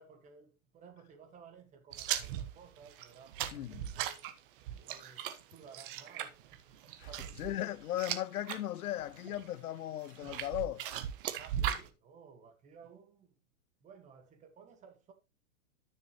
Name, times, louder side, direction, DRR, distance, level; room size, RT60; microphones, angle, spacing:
voice 1, 0.0-4.2 4.8-7.6 11.4-13.3 13.8-15.1, right 6 dB, 15° right, 1.5 m, -56 dB
sound 1, 1.9-8.6 9.0-9.5 10.1-11.9, right 11 dB, 40° right, 1.1 m, -38 dB
voice 2, 3.5-3.9 7.0-7.1 7.4-10.8, left 13 dB, 85° left, 0.7 m, -37 dB
13.0 x 6.5 x 3.0 m
hypercardioid pair, 155°, 43 cm